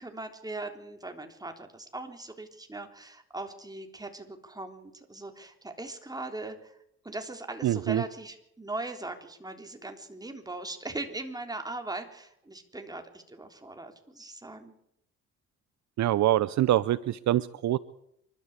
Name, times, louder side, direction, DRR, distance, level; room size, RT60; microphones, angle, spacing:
voice 1, 0.0-6.8 7.0-14.8, right 2 dB, 10° right, 5 dB, 3.6 m, -40 dB
voice 2, 7.6-8.0 16.0-17.8, right 13 dB, 65° right, 17 dB, 0.7 m, -25 dB
26.5 x 12.5 x 8.3 m, 0.77 s
cardioid pair, 90°, 30 cm